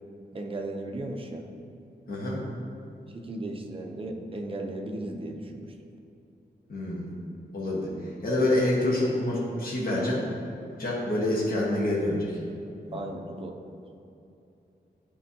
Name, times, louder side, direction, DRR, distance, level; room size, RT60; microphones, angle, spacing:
voice 1, 0.3-1.5 3.1-5.7 12.9-13.5, right 2 dB, 30° right, 2 dB, 0.6 m, -35 dB
voice 2, 2.1-2.4 6.7-7.1 7.5-10.2 10.8-12.3 12.9-13.0, left 1 dB, 55° left, -5 dB, 1.3 m, -27 dB
10.0 x 4.5 x 2.8 m, 2.7 s
wide cardioid pair, 160°, 18 cm